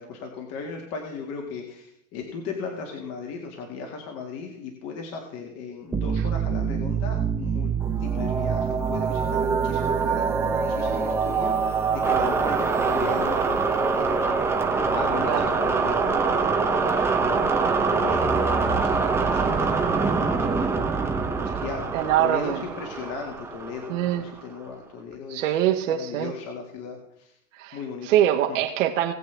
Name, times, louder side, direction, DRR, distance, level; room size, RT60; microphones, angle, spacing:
voice 1, 0.0-7.7 8.0-14.5 14.9-20.9 21.4-25.6 25.9-27.3 27.7-28.1 28.5-28.6, left 5 dB, 40° left, 1 dB, 2.0 m, -37 dB
sound 1, 5.9-24.4, right 5 dB, 5° right, 0.7 m, -24 dB
voice 2, 21.9-22.6 23.9-24.2 25.3-26.3 27.5-27.8 28.0-29.1, right 11 dB, 70° right, 2 dB, 1.6 m, -23 dB
19.5 x 7.9 x 3.4 m, 0.73 s
supercardioid pair, 155°, 39 cm